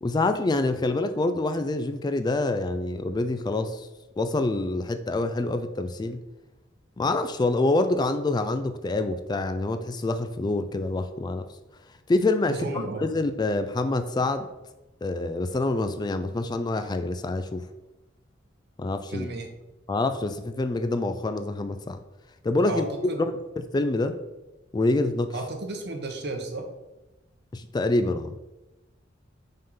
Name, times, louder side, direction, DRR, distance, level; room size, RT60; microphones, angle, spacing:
voice 1, 0.0-3.9 4.2-6.2 7.0-11.5 12.1-14.5 15.0-17.6 18.8-19.3 19.9-22.0 22.4-22.8 23.2-23.3 23.7-24.2 24.7-25.3 27.5-28.4, left 2 dB, 20° left, 9 dB, 0.3 m, -26 dB
voice 2, 12.5-13.0 19.1-19.5 22.6-23.3 25.3-26.6, right 2 dB, 60° right, 4 dB, 1.0 m, -33 dB
5.4 x 3.8 x 5.5 m, 1.0 s
head